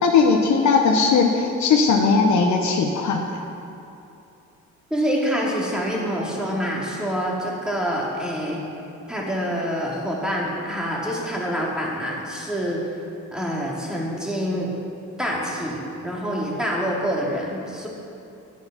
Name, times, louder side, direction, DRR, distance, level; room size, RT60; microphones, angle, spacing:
voice 1, 0.0-3.3, left 4 dB, 70° left, 2 dB, 1.0 m, -18 dB
voice 2, 4.9-8.6 9.1-12.8 13.3-14.7 15.2-17.9, equal, ahead, -4 dB, 2.8 m, -26 dB
10.5 x 8.8 x 6.0 m, 2.7 s
cardioid pair, 90°, 30 cm